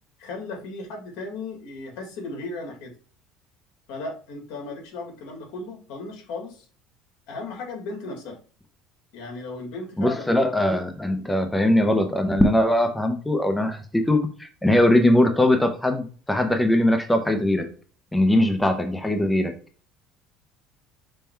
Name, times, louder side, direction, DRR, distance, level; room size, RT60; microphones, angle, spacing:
voice 1, 0.2-2.9 3.9-6.6 7.3-8.4 9.1-10.3, left 3 dB, 75° left, 2 dB, 1.7 m, -36 dB
voice 2, 10.0-17.7 18.1-19.5, left 1 dB, 5° left, 5 dB, 0.5 m, -21 dB
5.4 x 2.2 x 4.4 m, 0.40 s
cardioid pair, 140°, 0 cm